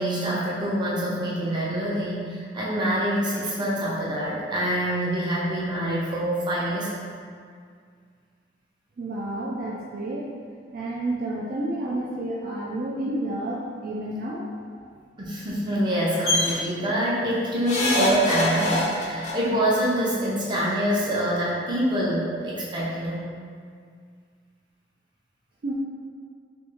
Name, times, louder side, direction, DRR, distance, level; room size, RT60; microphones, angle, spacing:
voice 1, 0.0-7.1 15.2-23.3, right 1 dB, 25° right, -7 dB, 0.7 m, -25 dB
voice 2, 9.0-10.3 10.7-14.4 25.6-25.7, right 1 dB, 50° right, -5 dB, 0.3 m, -30 dB
sound 1, 16.2-16.5 17.7-19.3 20.5-20.6 20.9-21.0, left 2 dB, 40° left, 0.5 m, -24 dB
3.4 x 2.6 x 2.9 m, 2.1 s
head